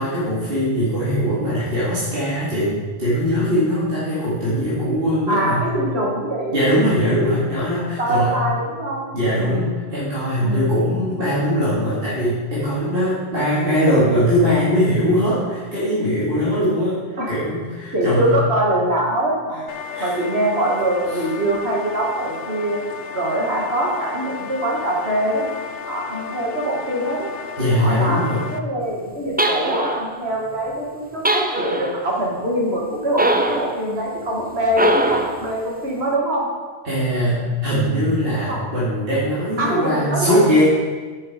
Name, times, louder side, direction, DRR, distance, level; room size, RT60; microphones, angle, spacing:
voice 1, 0.0-5.7 6.5-8.4 9.1-17.0 17.3-18.4 19.9-20.1 21.1-21.2 27.6-28.4 36.8-40.6, equal, 60° right, -10 dB, 2.5 m, -21 dB
voice 2, 5.3-6.6 8.0-9.0 9.3-9.8 10.4-10.8 17.2-17.4 17.9-19.7 20.0-22.8 23.1-25.5 25.9-27.3 27.8-36.5 38.5-38.7 39.6-40.4, right 1 dB, 75° right, -2 dB, 2.1 m, -23 dB
sound 1, 19.7-28.6, left 6 dB, 65° left, 0.9 m, -33 dB
sound 2, 29.4-30.1 31.3-32.0 33.2-33.8 34.7-35.4, right 1 dB, 15° right, 0.4 m, -21 dB
10.0 x 7.0 x 5.0 m, 1.5 s
omnidirectional pair, 1.1 m